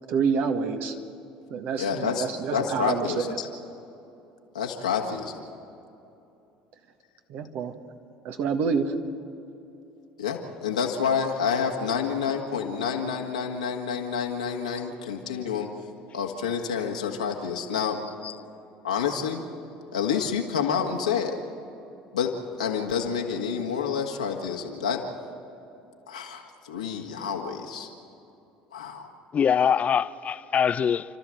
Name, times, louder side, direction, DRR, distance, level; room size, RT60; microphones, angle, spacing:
voice 1, 0.1-1.0 1.5-3.4 7.3-7.7 8.2-8.9, right 6 dB, 60° right, 1.7 m, -27 dB
voice 2, 1.8-2.3 2.5-3.5 4.5-5.4 10.2-15.7 16.1-18.0 18.8-19.4 19.9-21.4 22.1-25.0 26.1-27.9 28.7-29.1, left 6 dB, 90° left, 1.9 m, -28 dB
voice 3, 29.3-31.2, left 7 dB, 40° left, 0.6 m, -23 dB
30.0 x 13.0 x 7.8 m
hypercardioid pair, 65°, 4 cm